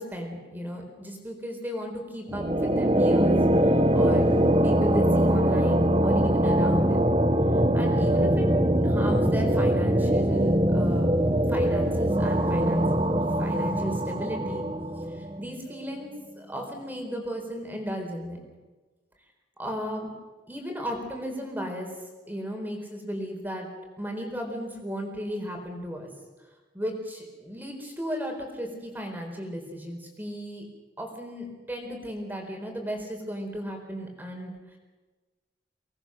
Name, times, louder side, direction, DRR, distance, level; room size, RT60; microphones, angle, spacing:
voice 1, 0.0-7.0 7.7-8.5 8.8-11.1 11.5-14.7 15.1-18.4 19.6-20.1 20.5-21.9 22.3-23.7 24.0-26.1 26.7-30.6 31.0-34.8, equal, 10° right, 2 dB, 4.3 m, -35 dB
sound 1, 2.3-15.4, right 1 dB, 30° right, 1.1 m, -22 dB
25.0 x 19.0 x 6.5 m, 1.3 s
head